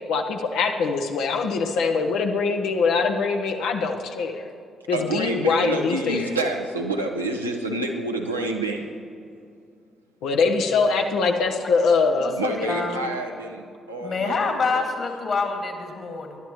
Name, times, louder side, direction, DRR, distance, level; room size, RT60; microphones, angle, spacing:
voice 1, 0.1-4.4 4.9-6.3 10.2-12.4, left 4 dB, 65° left, 3 dB, 0.8 m, -23 dB
voice 2, 4.9-8.9 12.4-14.8, right 2 dB, 85° right, 1 dB, 0.8 m, -28 dB
voice 3, 12.2-13.1 14.0-16.4, left 4 dB, 45° left, 4 dB, 2.0 m, -27 dB
20.0 x 11.5 x 3.0 m, 2.4 s
figure-of-eight pair, 40°, 0 cm